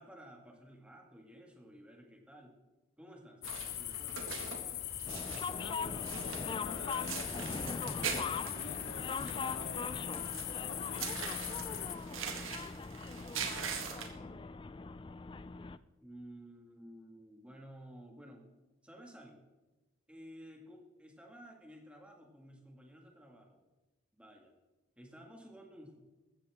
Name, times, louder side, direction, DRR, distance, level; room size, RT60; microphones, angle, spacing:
voice 1, 0.0-2.6 3.0-5.0 12.1-12.8 13.1-14.5 16.0-18.5 18.8-19.4 20.1-23.6 24.1-24.5 25.0-26.0, equal, 5° right, 1 dB, 1.9 m, -54 dB
sound 1, 3.4-12.0, left 12 dB, 50° left, 0.7 m, -41 dB
sound 2, 3.4-14.1, right 6 dB, 80° right, 1.8 m, -43 dB
sound 3, 5.1-15.8, left 4 dB, 25° left, 0.3 m, -41 dB
voice 2, 5.6-10.0 10.7-11.4 12.0-12.2, left 3 dB, 80° left, 7 dB, 1.2 m, -50 dB
15.5 x 13.5 x 3.6 m, 1.2 s
head